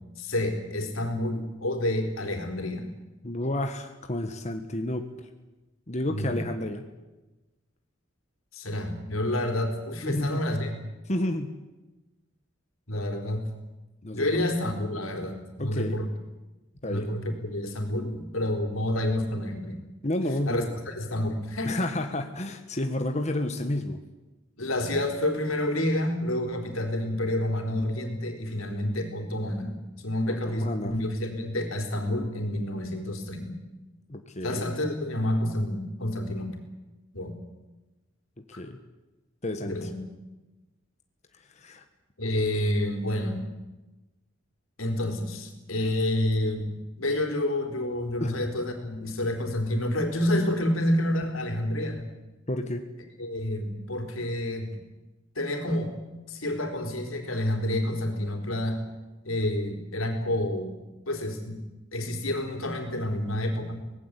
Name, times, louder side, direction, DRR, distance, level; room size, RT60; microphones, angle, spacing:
voice 1, 0.2-2.9 6.1-6.4 8.5-10.8 12.9-13.5 14.1-16.1 16.8-19.8 20.5-21.8 24.6-33.6 34.4-36.5 37.1-37.3 39.7-40.0 42.2-43.5 44.8-46.7 47.0-52.1 53.2-54.8 55.4-55.9 56.3-58.8 59.2-60.8 61.1-61.6 61.9-63.9, left 1 dB, 90° left, 5 dB, 4.2 m, -29 dB
voice 2, 3.2-5.3 5.9-6.8 10.0-10.4 11.1-11.5 14.0-14.4 15.6-16.0 16.8-17.1 20.0-20.7 21.6-24.0 30.4-30.9 34.1-34.7 38.6-38.8 39.4-39.9 41.5-41.8 48.2-48.3 52.5-52.8, left 1 dB, 35° left, 5 dB, 1.4 m, -30 dB
25.0 x 18.5 x 8.4 m, 1.1 s
head